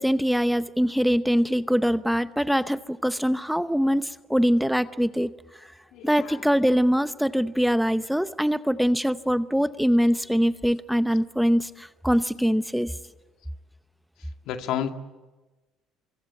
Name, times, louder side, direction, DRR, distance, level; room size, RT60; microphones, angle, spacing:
voice 1, 0.0-5.3 6.0-12.9, equal, ahead, 13 dB, 0.8 m, -23 dB
voice 2, 5.9-6.4 14.5-14.9, left 10 dB, 70° left, 6 dB, 2.1 m, -30 dB
25.0 x 24.5 x 8.5 m, 1.2 s
supercardioid pair, 85°, 0 cm